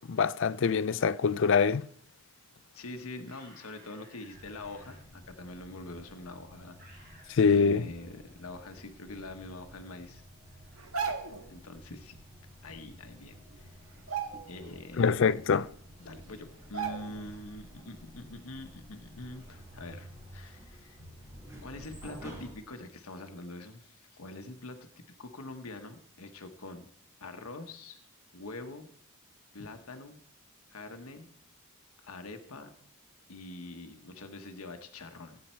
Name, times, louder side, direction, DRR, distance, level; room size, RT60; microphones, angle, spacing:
voice 1, 0.0-1.9 7.3-7.8 15.0-15.7, left 5 dB, 55° left, 0.4 m, -24 dB
voice 2, 2.7-7.1 7.4-10.2 11.5-12.2 12.6-13.7 14.5-15.1 16.0-21.0 21.6-26.9 27.2-28.0 28.3-28.9 29.5-30.2 30.7-31.3 32.0-32.7 33.3-35.4, left 2 dB, 80° left, 1.1 m, -44 dB
sound 1, 3.3-5.0 6.8-7.6, right 1 dB, 45° right, 5.6 m, -57 dB
sound 2, 4.3-22.5, equal, 15° right, 5.2 m, -51 dB
sound 3, 10.8-11.5 12.9-13.0 13.4-13.6 14.0-14.8 15.2-15.3 16.1-16.2 16.7-17.4 17.7-17.9, right 6 dB, 75° right, 1.4 m, -36 dB
16.5 x 8.8 x 4.5 m
head